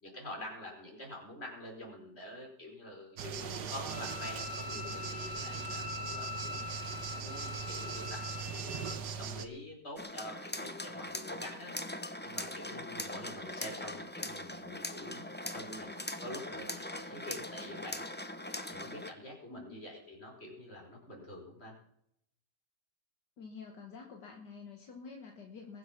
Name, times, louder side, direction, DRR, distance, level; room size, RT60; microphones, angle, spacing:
voice 1, 0.0-6.6 7.2-8.2 8.5-8.9 9.2-11.7 12.2-15.2 15.5-15.9 16.2-18.0 18.7-21.7, left 1 dB, 35° left, -1 dB, 5.0 m, -46 dB
sound 1, 3.2-9.5, right 6 dB, 70° right, 1.7 m, -40 dB
Bowed string instrument, 3.9-8.9, left 4 dB, 15° right, 3.1 m, -42 dB
sound 2, 10.0-19.1, left 1 dB, 15° left, 0.4 m, -41 dB
voice 2, 19.5-19.8 23.4-25.8, left 5 dB, 70° left, 2 dB, 2.0 m, -48 dB
21.5 x 7.6 x 5.8 m, 0.72 s
omnidirectional pair, 1.9 m